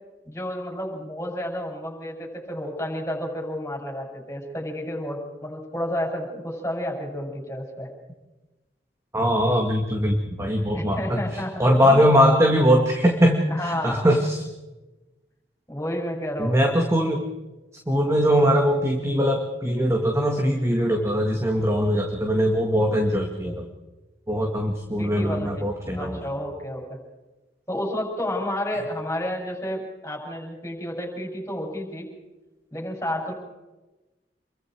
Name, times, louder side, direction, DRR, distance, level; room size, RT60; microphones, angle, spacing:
voice 1, 0.2-7.9 10.7-12.0 13.5-14.0 15.7-16.6 25.0-25.6 25.9-27.0 27.7-32.1 32.7-33.3, left 1 dB, 15° left, 0 dB, 7.1 m, -31 dB
voice 2, 9.1-14.4 16.4-17.2 17.9-23.7 24.3-26.2, equal, 15° right, 2 dB, 2.1 m, -21 dB
28.0 x 23.0 x 4.7 m, 1.1 s
head